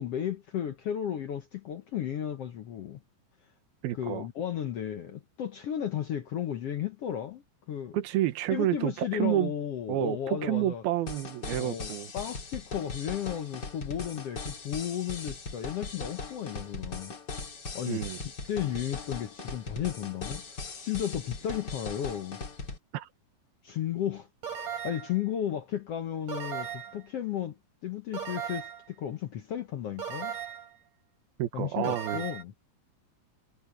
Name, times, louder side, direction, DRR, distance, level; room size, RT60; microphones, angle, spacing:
voice 1, 0.0-3.0 3.9-8.0 8.5-10.8 11.6-17.1 17.7-18.0 18.5-22.4 23.6-24.3 24.8-27.6 27.8-30.4 31.5-32.5, left 10 dB, 75° left, 1.4 m, -34 dB
voice 2, 3.8-4.3 7.9-9.5 9.9-12.1 17.9-18.2 22.9-23.1 31.4-32.2, right 13 dB, 80° right, 3.1 m, -29 dB
sound 1, 11.1-22.8, left 3 dB, 30° left, 2.6 m, -39 dB
sound 2, 24.4-25.2 26.3-27.0 28.1-28.9 30.0-30.7 31.8-32.4, right 8 dB, 55° right, 5.7 m, -37 dB
omnidirectional pair, 4.3 m